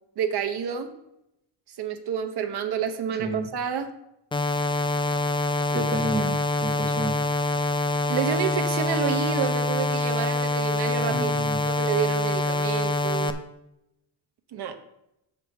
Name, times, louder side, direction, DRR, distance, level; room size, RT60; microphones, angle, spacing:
voice 1, 0.2-0.9 1.7-3.9 8.1-11.3 11.6-13.3 14.5-14.7, right 8 dB, 55° right, 6 dB, 1.0 m, -29 dB
voice 2, 3.1-3.5 5.7-7.2 11.0-11.7, right 2 dB, 20° right, 4 dB, 1.1 m, -31 dB
sound 1, 4.3-13.3, left 2 dB, 10° left, 0.3 m, -25 dB
6.3 x 5.0 x 6.8 m, 0.83 s
cardioid pair, 150°, 46 cm